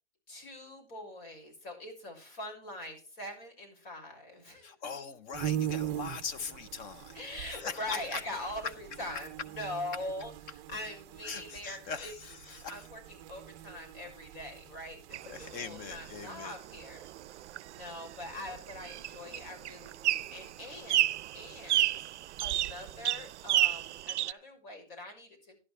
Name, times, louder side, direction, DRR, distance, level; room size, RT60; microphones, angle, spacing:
voice 1, 0.3-4.7 7.1-9.3 9.6-10.3 10.7-12.1 12.5-17.0 17.7-22.0 22.4-25.6, left 1 dB, 55° left, 3 dB, 5.8 m, -43 dB
voice 2, 4.6-7.2 7.5-8.2 8.6-8.7 11.2-12.9 15.3-16.6, left 6 dB, 25° left, 13 dB, 0.7 m, -41 dB
sound 1, 5.3-24.0, right 11 dB, 30° right, 0.6 m, -44 dB
sound 2, 15.1-24.3, right 14 dB, 80° right, 0.5 m, -33 dB
13.0 x 11.0 x 3.2 m, 0.35 s
hypercardioid pair, 140°, 34 cm